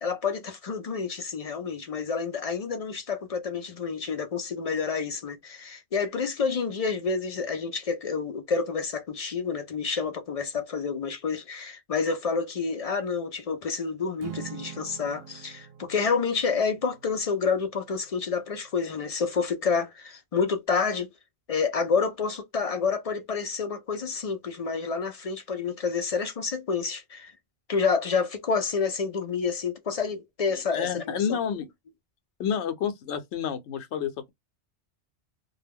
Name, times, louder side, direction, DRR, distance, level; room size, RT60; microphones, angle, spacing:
voice 1, 0.0-21.1 21.5-27.3 27.7-31.4, left 5 dB, 60° left, 0.4 m, -29 dB
Acoustic guitar / Strum, 14.2-18.7, right 9 dB, 65° right, 0.7 m, -45 dB
voice 2, 30.5-31.7 32.4-34.3, left 8 dB, 85° left, 0.9 m, -30 dB
2.2 x 2.1 x 3.4 m
omnidirectional pair, 1.1 m